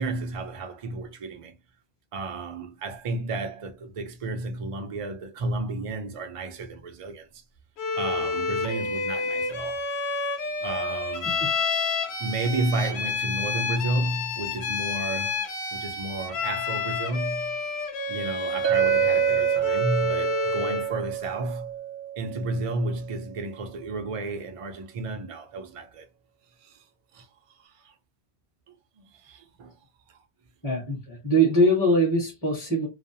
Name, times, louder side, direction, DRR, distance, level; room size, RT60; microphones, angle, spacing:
voice 1, 0.0-1.5 2.1-7.3 8.0-9.8 10.6-11.4 12.2-15.4 15.7-17.6 18.1-21.7 22.2-26.1 26.6-26.8 27.1-27.3 27.6-27.9 29.0-29.7, right 2 dB, 50° right, 0.4 m, -32 dB
Bowed string instrument, 7.8-21.0, left 4 dB, 75° left, 0.9 m, -29 dB
Chink clink, 18.6-23.1, right 11 dB, 70° right, 0.8 m, -27 dB
voice 2, 30.6-32.9, right 1 dB, 20° left, 0.9 m, -22 dB
2.4 x 2.1 x 2.7 m
omnidirectional pair, 1.1 m